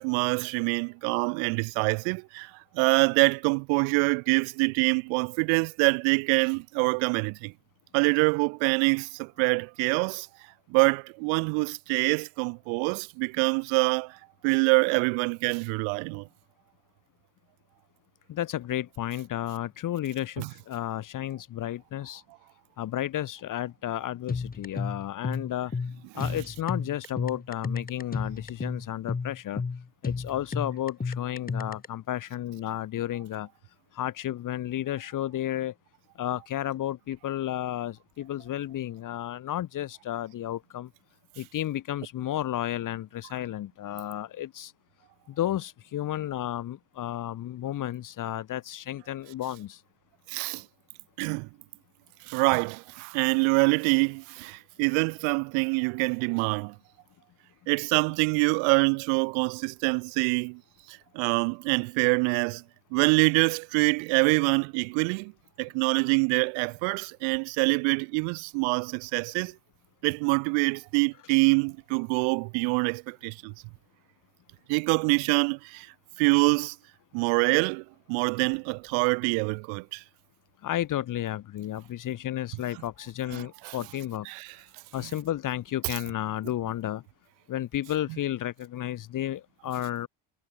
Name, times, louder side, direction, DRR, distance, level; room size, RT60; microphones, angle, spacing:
voice 1, 0.0-2.5 2.7-7.5 7.9-10.3 10.7-14.2 14.4-16.3 20.4-20.5 26.2-26.3 50.3-50.6 51.2-51.5 52.3-56.7 57.7-60.6 60.9-62.6 62.9-65.3 65.6-69.5 70.0-73.5 74.7-75.9 76.2-76.7 77.1-80.0 83.3-83.4 84.3-84.5, right 39 dB, 90° right, 1.5 m, -25 dB
voice 2, 18.3-22.2 22.8-25.7 26.1-29.6 30.0-33.5 33.9-35.7 36.2-40.9 41.4-44.7 45.4-49.8 80.6-84.3 84.9-87.0 87.5-90.1, left 12 dB, 45° left, 1.4 m, -32 dB
sound 1, 24.3-31.9, left 4 dB, 20° left, 4.7 m, -32 dB
cardioid pair, 130°, 45 cm